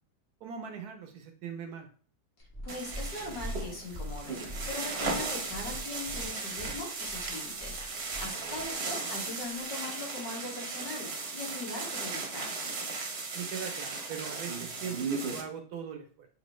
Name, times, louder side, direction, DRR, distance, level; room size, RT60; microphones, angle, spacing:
voice 1, 0.4-1.9 8.2-8.6 13.3-16.3, right 7 dB, 70° right, 5 dB, 1.1 m, -41 dB
Purr, 2.4-8.7 9.5-9.6, equal, 40° left, 1.6 m, -42 dB
voice 2, 2.6-12.6, left 2 dB, 75° left, -1 dB, 2.0 m, -40 dB
sound 1, 2.7-15.4, right 4 dB, 50° right, 0.9 m, -36 dB
5.9 x 2.8 x 3.1 m, 0.42 s
omnidirectional pair, 1.9 m